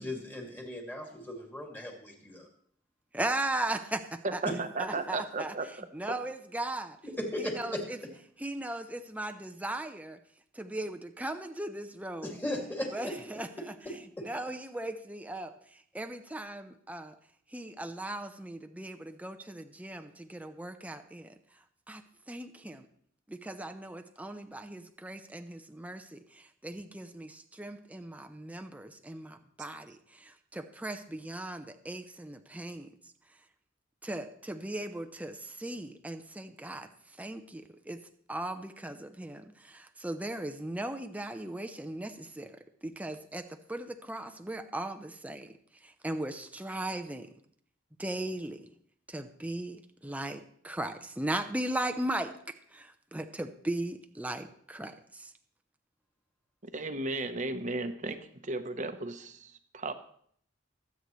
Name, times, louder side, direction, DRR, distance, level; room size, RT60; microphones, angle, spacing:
voice 1, 0.0-2.5 7.0-7.8 12.2-13.1, left 1 dB, 10° left, 0 dB, 2.3 m, -37 dB
voice 2, 3.1-4.0 4.3-4.4 4.8-5.5 5.9-7.0 7.4-8.0 8.4-10.2 10.6-12.3 12.9-13.7 14.2-15.5 15.9-17.1 17.5-21.3 21.9-22.0 22.3-22.9 23.3-32.9 34.0-36.9 37.2-38.0 38.3-42.5 42.8-45.5 46.0-47.3 48.0-48.6 49.1-52.3 52.7-55.3, right 1 dB, 10° right, 7 dB, 0.6 m, -37 dB
voice 3, 4.2-5.9 56.7-59.9, right 3 dB, 40° right, 8 dB, 0.9 m, -35 dB
22.5 x 8.2 x 3.1 m, 0.63 s
head